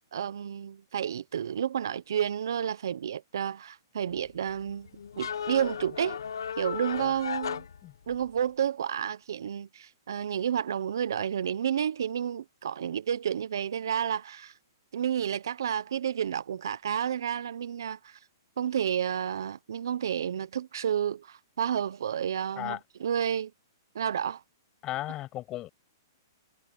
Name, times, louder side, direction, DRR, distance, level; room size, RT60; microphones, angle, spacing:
voice 1, 0.0-4.9 5.2-6.2 6.6-7.6 8.1-14.5 14.9-18.2 18.6-23.5 23.9-24.4, right 9 dB, 75° right, 1.0 m, -31 dB
sound 1, 4.1-8.4, left 7 dB, 85° left, 1.4 m, -36 dB
voice 2, 24.8-25.7, left 15 dB, 25° left, 6.8 m, -35 dB
hypercardioid pair, 145°, 2 cm